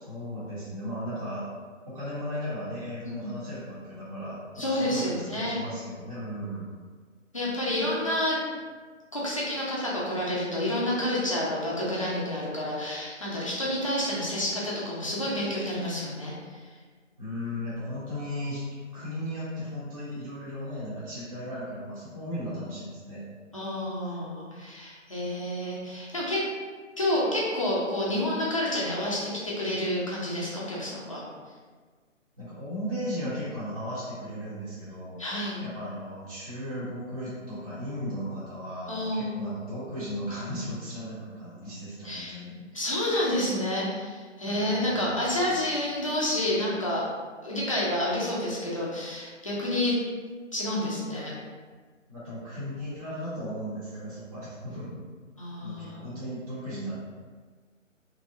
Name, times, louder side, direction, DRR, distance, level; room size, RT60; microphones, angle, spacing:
voice 1, 0.1-1.5 1.9-6.7 17.2-18.6 18.9-23.2 24.0-24.2 32.4-35.2 35.6-42.8 43.3-43.4 44.4-45.6 52.1-55.0 55.6-56.9, equal, 25° right, -12 dB, 0.7 m, -36 dB
voice 2, 3.0-3.3 4.6-5.6 7.3-8.4 9.1-16.3 21.2-21.3 23.5-26.5 27.0-31.2 35.2-35.6 38.9-39.4 42.0-42.4 42.7-47.1 47.4-50.0 50.5-51.3 55.4-56.0, left 1 dB, 25° left, -6 dB, 0.5 m, -29 dB
3.2 x 2.6 x 2.6 m, 1.5 s
figure-of-eight pair, 155°, 39 cm